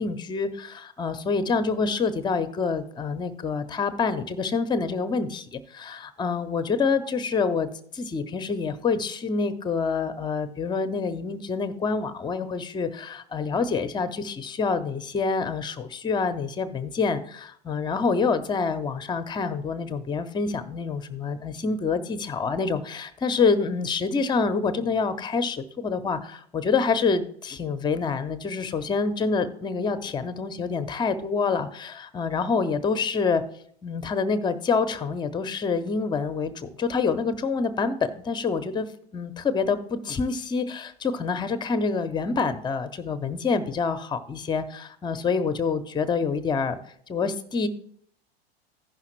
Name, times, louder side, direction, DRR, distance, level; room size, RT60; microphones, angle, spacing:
voice 1, 0.0-7.7 7.9-33.4 33.8-38.9 39.1-46.8 47.1-47.7, left 4 dB, 15° left, 10 dB, 0.7 m, -27 dB
15.0 x 5.7 x 3.1 m, 0.63 s
figure-of-eight pair, 90°, 32 cm